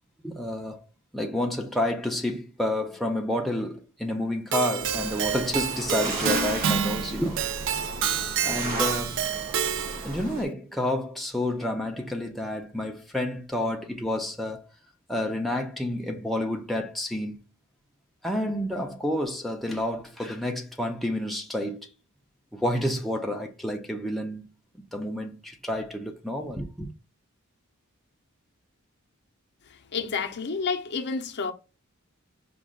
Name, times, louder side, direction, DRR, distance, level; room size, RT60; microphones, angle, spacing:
voice 1, 0.2-0.8 1.1-7.5 8.4-9.2 10.0-14.7 15.1-17.4 18.2-21.9 22.5-24.5 24.9-26.9, left 1 dB, ahead, 0.5 m, -29 dB
Keyboard (musical), 4.5-10.2, right 8 dB, 60° right, 0.4 m, -28 dB
sound 1, 4.8-10.4, right 1 dB, 45° right, 1.1 m, -35 dB
voice 2, 29.7-31.5, left 5 dB, 50° left, 0.6 m, -30 dB
5.1 x 2.3 x 3.6 m
head